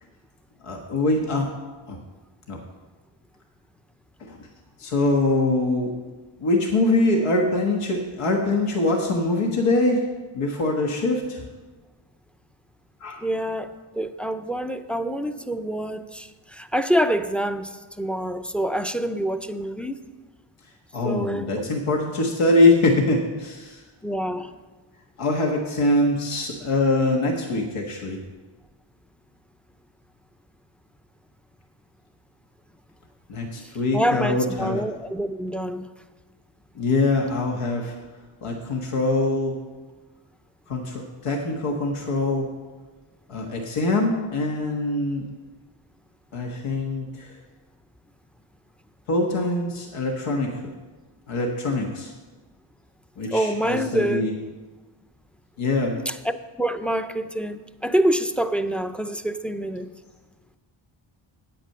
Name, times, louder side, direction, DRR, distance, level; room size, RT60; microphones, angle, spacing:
voice 1, 0.6-1.5 1.9-2.0 2.5-2.6 4.2-4.4 4.8-5.9 6.4-10.0 10.3-11.4 13.0-13.2 20.9-23.8 25.2-28.2 33.3-34.8 36.7-38.0 38.4-39.6 40.7-42.5 43.3-45.2 46.3-47.4 49.1-50.6 51.3-52.1 53.2-54.3 55.6-56.0, left 2 dB, 85° left, 1 dB, 1.5 m, -23 dB
voice 2, 13.2-20.0 21.0-21.5 24.0-24.5 33.6-35.9 53.3-54.3 56.1-59.9, right 1 dB, ahead, 10 dB, 0.5 m, -26 dB
9.0 x 8.7 x 6.6 m, 1.3 s
cardioid pair, 85°, 50 cm